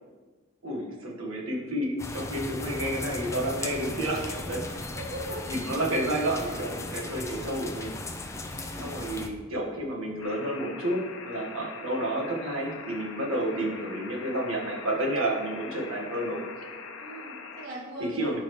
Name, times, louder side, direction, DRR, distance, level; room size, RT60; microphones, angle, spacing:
voice 1, 0.6-4.9 5.5-7.9 8.8-16.4 17.6-17.7 18.0-18.4, right 1 dB, 90° right, -2 dB, 1.6 m, -30 dB
sound 1, 2.0-9.3, left 2 dB, 15° left, 0.4 m, -37 dB
voice 2, 4.9-5.4 6.4-6.5 8.5-9.1 17.0-18.3, right 1 dB, 55° right, -7 dB, 2.1 m, -40 dB
sound 2, 10.2-17.7, left 4 dB, 70° left, 0.8 m, -42 dB
12.0 x 5.6 x 3.1 m, 1.4 s
head